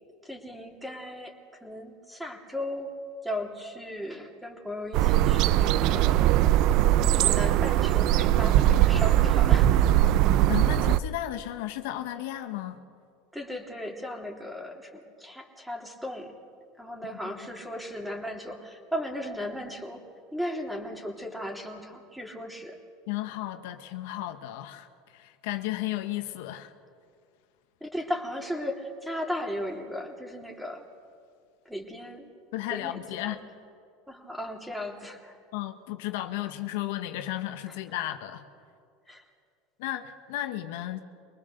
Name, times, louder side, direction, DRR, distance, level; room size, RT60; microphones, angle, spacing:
voice 1, 0.2-1.3 1.6-2.9 3.2-6.2 7.1-10.0 13.3-16.3 16.8-20.0 20.3-22.8 27.8-30.8 31.6-32.3 32.7-33.4 34.1-35.4 37.7-37.8 39.1-39.2, equal, ahead, 2 dB, 3.1 m, -36 dB
sound 1, 4.9-11.0, right 13 dB, 60° right, 0.6 m, -21 dB
voice 2, 10.5-12.8 17.2-17.3 23.1-26.7 32.5-33.4 35.5-38.5 39.8-41.0, left 14 dB, 75° left, 7 dB, 1.2 m, -34 dB
24.0 x 19.5 x 6.8 m, 2.2 s
supercardioid pair, 100°, 0 cm